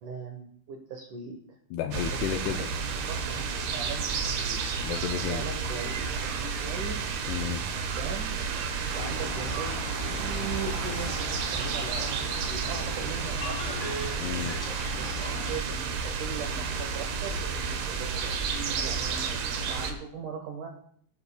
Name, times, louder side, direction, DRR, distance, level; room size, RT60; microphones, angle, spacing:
voice 1, 0.0-1.6 2.3-4.6 5.3-7.1 7.9-8.4 8.9-9.8 10.1-13.8 14.9-19.3 19.7-20.7, right 5 dB, 90° right, 3 dB, 1.7 m, -40 dB
voice 2, 1.7-2.7 4.8-5.4 7.3-7.6 14.2-14.6, left 9 dB, 85° left, 5 dB, 2.4 m, -31 dB
sound 1, 1.9-19.9, right 5 dB, 70° right, 2.7 m, -31 dB
sound 2, 8.9-15.6, equal, 30° left, 3.3 m, -38 dB
17.0 x 10.5 x 2.2 m, 0.62 s
omnidirectional pair, 5.2 m